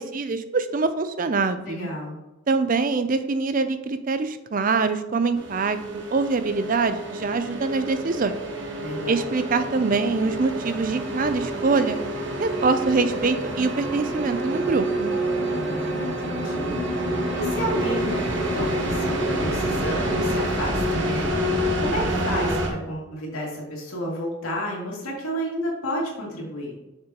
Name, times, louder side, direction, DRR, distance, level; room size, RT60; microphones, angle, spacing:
voice 1, 0.0-1.9 2.5-8.3 9.1-12.0 12.4-15.1, right 4 dB, 40° right, 11 dB, 0.4 m, -24 dB
voice 2, 1.6-2.2 8.8-9.3 15.5-26.7, equal, 85° left, -3 dB, 2.6 m, -31 dB
sound 1, 5.3-22.7, right 1 dB, 55° right, 1.2 m, -27 dB
6.8 x 6.7 x 3.0 m, 1.0 s
head